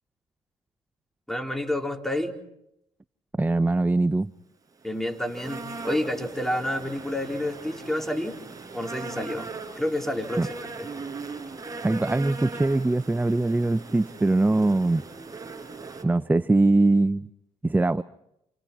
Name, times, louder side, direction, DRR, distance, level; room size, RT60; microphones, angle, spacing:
voice 1, 1.3-2.4 4.8-8.4 8.7-10.9, left 1 dB, 5° left, 3 dB, 4.3 m, -29 dB
voice 2, 3.4-4.3 10.4-10.5 11.8-15.0 16.0-17.3 17.6-18.0, right 2 dB, 15° right, 15 dB, 0.8 m, -22 dB
sound 1, 4.8-16.0, right 3 dB, 30° right, 5.8 m, -39 dB
29.5 x 28.5 x 4.5 m, 0.80 s
supercardioid pair, 65°, 13 cm